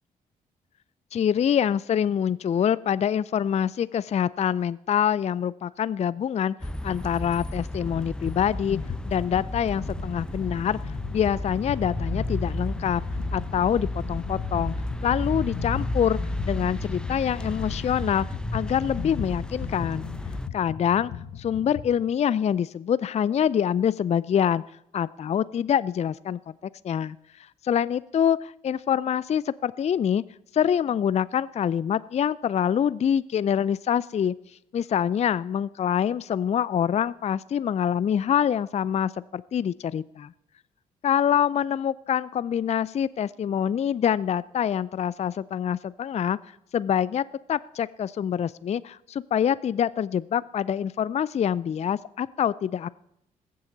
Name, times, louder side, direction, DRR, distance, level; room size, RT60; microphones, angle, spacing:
voice 1, 1.1-6.6 6.8-8.8 9.0-13.0 13.3-14.7 15.0-16.2 16.4-18.3 18.5-20.1 20.5-21.1 21.4-24.6 24.9-26.4 26.8-27.2 27.7-30.2 30.5-34.3 34.7-40.3 41.0-46.4 46.7-52.9, left 9 dB, 35° left, 19 dB, 0.4 m, -25 dB
sound 1, 6.6-20.5, left 1 dB, 5° left, 0.7 m, -33 dB
sound 2, 8.3-8.4 8.7-22.0, left 9 dB, 60° left, 1.2 m, -37 dB
21.5 x 7.6 x 3.9 m, 0.77 s
hypercardioid pair, 40°, 19 cm